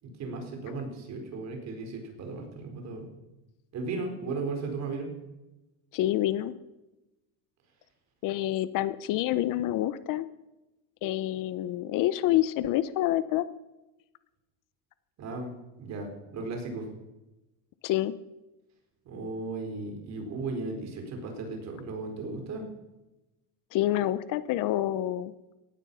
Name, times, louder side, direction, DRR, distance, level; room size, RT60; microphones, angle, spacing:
voice 1, 0.0-3.1 3.7-5.1 15.2-15.5 15.8-16.9 19.0-22.6, right 3 dB, 40° right, 4 dB, 4.6 m, -36 dB
voice 2, 5.9-6.5 8.2-10.3 11.0-13.4 17.8-18.1 23.7-25.3, left 14 dB, 50° left, 15 dB, 0.8 m, -27 dB
17.5 x 14.5 x 5.6 m, 1.0 s
cardioid pair, 145°, 41 cm